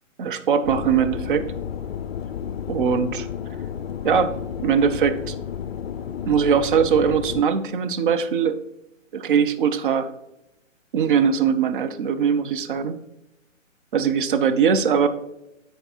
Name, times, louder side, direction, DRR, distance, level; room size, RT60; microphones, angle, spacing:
voice 1, 0.2-1.5 2.7-3.3 4.0-4.4 4.6-5.3 6.3-8.6 9.1-10.1 10.9-13.0 13.9-15.1, right 7 dB, 40° right, 10 dB, 0.6 m, -21 dB
sound 1, 0.6-7.4, left 8 dB, 50° left, 0.5 m, -32 dB
8.7 x 4.6 x 4.4 m, 0.89 s
figure-of-eight pair, 130°, 39 cm